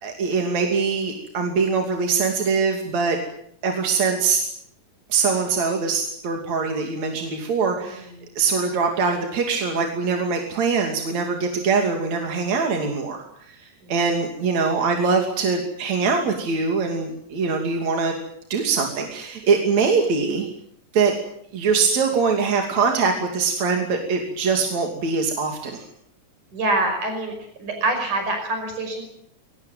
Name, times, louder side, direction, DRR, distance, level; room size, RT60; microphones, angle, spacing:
voice 1, 0.0-3.2 3.6-4.4 5.1-8.1 8.4-13.6 13.9-18.2 18.5-20.5 20.9-21.1 21.5-25.8, right 5 dB, 65° right, 3 dB, 4.0 m, -23 dB
voice 2, 7.9-8.3 13.8-13.9 26.5-29.1, right 2 dB, 85° right, 5 dB, 7.0 m, -26 dB
23.0 x 20.0 x 9.2 m, 0.70 s
omnidirectional pair, 3.4 m